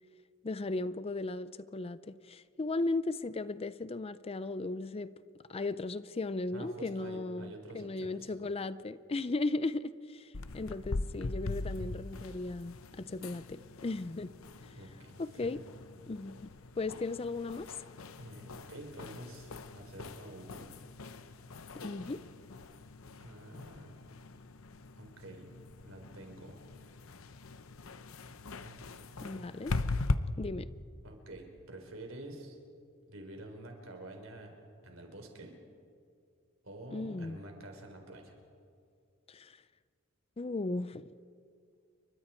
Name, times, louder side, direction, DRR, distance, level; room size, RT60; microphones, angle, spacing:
voice 1, 0.4-5.1 5.5-14.3 14.6-14.7 15.2-15.6 16.1-16.5 16.8-17.7 21.8-22.2 29.2-29.7 30.4-30.7 36.9-37.4 39.3-39.6 40.4-41.1, left 2 dB, 30° left, 15 dB, 0.5 m, -36 dB
voice 2, 6.5-8.3 14.7-15.6 18.2-20.8 22.0-22.1 23.2-24.0 25.0-25.5 25.8-26.6 28.6-29.4 31.0-32.6 33.1-34.5 34.8-35.5 36.6-38.4, right 1 dB, 70° right, 3 dB, 4.0 m, -48 dB
sound 1, 10.3-30.2, left 3 dB, 70° left, 0.8 m, -41 dB
29.5 x 24.0 x 4.4 m, 2.3 s
head